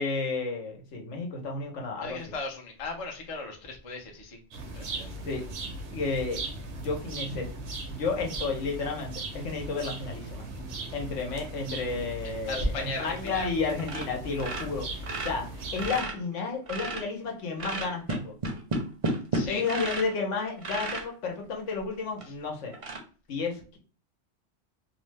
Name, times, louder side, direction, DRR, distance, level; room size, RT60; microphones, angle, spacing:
voice 1, 0.0-2.2 5.3-5.4 5.9-6.4 6.8-7.5 7.9-10.5 10.9-18.3 19.5-22.8 23.3-23.8, left 4 dB, 80° left, 1 dB, 1.1 m, -32 dB
voice 2, 2.0-4.4 4.7-5.2 12.5-13.5 19.3-19.6, left 2 dB, 35° left, 1 dB, 0.6 m, -35 dB
sound 1, 4.5-16.0, right 2 dB, 70° right, 0.9 m, -39 dB
sound 2, 13.3-13.5 13.8-14.1 14.4-17.2 17.6-20.2 20.6-21.1 21.7-21.8 22.2-22.3 22.7-23.0, right 2 dB, 40° right, 0.5 m, -32 dB
2.8 x 2.0 x 3.2 m, 0.38 s
omnidirectional pair, 1.3 m